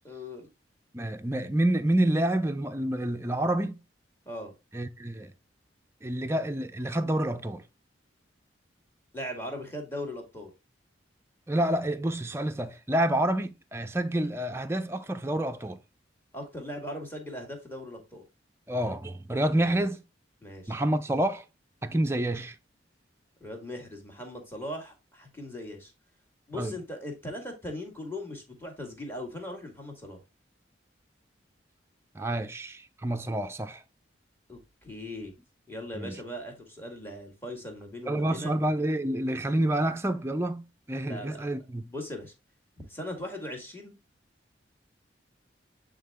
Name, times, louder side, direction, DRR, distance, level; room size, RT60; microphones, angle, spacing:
voice 1, 0.0-0.5 4.3-4.5 9.1-10.5 16.3-18.2 19.6-19.9 20.4-20.8 23.4-25.9 26.5-30.2 34.5-35.3 35.7-38.5 41.0-41.5 41.9-42.3 42.9-44.0, left 1 dB, 10° left, 1.8 m, -39 dB
voice 2, 0.9-3.8 4.7-5.3 6.0-7.6 11.5-15.8 18.7-20.0 20.7-21.4 21.8-22.6 26.5-26.7 32.1-33.8 35.9-36.2 38.1-41.8, right 1 dB, 15° right, 0.5 m, -28 dB
8.7 x 3.7 x 3.5 m
head